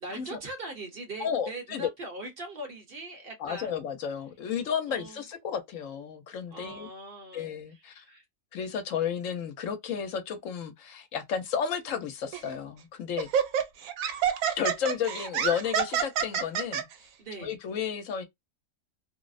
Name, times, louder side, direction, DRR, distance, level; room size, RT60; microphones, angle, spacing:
voice 1, 0.0-3.8 4.9-5.2 6.5-8.2 17.2-17.6, right 2 dB, 50° right, 0.9 m, -41 dB
voice 2, 1.2-1.9 3.4-6.9 7.3-8.0 8.5-13.3 14.5-16.9 17.4-18.2, left 7 dB, 80° left, 1.0 m, -32 dB
Laughter, 12.3-12.5 13.2-16.8, right 8 dB, 90° right, 1.0 m, -28 dB
2.6 x 2.0 x 2.3 m
omnidirectional pair, 1.4 m